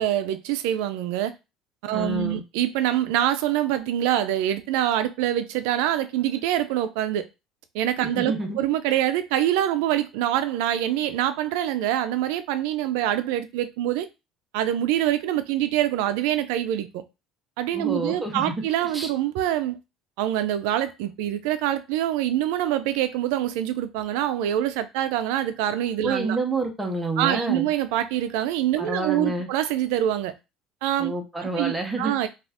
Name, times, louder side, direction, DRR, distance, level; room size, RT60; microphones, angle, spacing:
voice 1, 0.0-1.3 1.8-7.2 7.7-14.1 14.5-17.0 17.6-19.8 20.2-26.4 27.2-30.3 30.8-31.1 31.6-32.3, right 12 dB, 85° right, 0.4 m, -25 dB
voice 2, 1.9-2.4 8.0-8.6 17.7-18.5 18.8-19.1 26.0-27.7 28.8-29.5 31.0-32.1, right 2 dB, 10° right, 0.8 m, -28 dB
2.5 x 2.4 x 3.4 m
cardioid pair, 125°, 0 cm